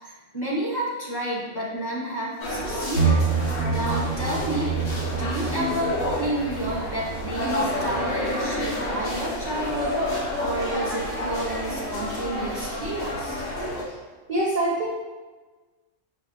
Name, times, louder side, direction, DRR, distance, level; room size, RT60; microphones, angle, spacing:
voice 1, 0.0-3.2 3.7-4.7 5.1-10.0 10.4-13.4, right 1 dB, 25° left, -7 dB, 0.7 m, -30 dB
sound 1, 2.4-13.8, left 1 dB, 55° left, 1.2 m, -29 dB
sound 2, 2.9-8.7 9.0-9.1, right 5 dB, 90° left, 1.9 m, -28 dB
voice 2, 14.3-14.9, right 1 dB, 55° right, -4 dB, 0.5 m, -24 dB
5.2 x 2.3 x 2.8 m, 1.3 s
omnidirectional pair, 1.3 m